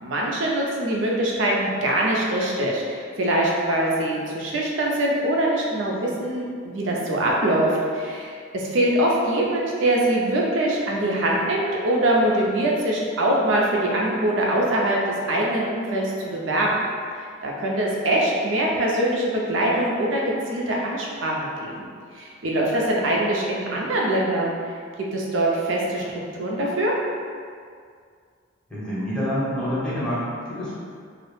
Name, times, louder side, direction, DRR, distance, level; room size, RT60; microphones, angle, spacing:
voice 1, 0.0-16.8 17.4-21.9 22.2-24.5 25.1-26.0 26.4-26.9, right 1 dB, 65° right, -2 dB, 0.4 m, -23 dB
voice 2, 28.7-30.7, equal, 5° left, -10 dB, 0.6 m, -27 dB
2.3 x 2.0 x 3.0 m, 2.1 s
head